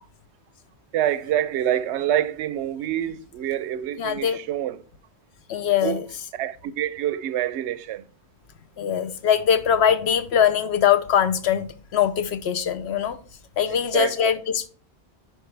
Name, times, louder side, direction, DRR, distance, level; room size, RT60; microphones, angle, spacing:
voice 1, 0.9-4.8 5.8-6.0 6.3-8.0 13.9-14.3, right 11 dB, 85° right, 0.9 m, -26 dB
voice 2, 4.0-4.4 5.5-6.0 8.8-13.2 13.6-14.7, left 8 dB, 75° left, 1.0 m, -22 dB
10.0 x 5.0 x 3.2 m
omnidirectional pair, 1.1 m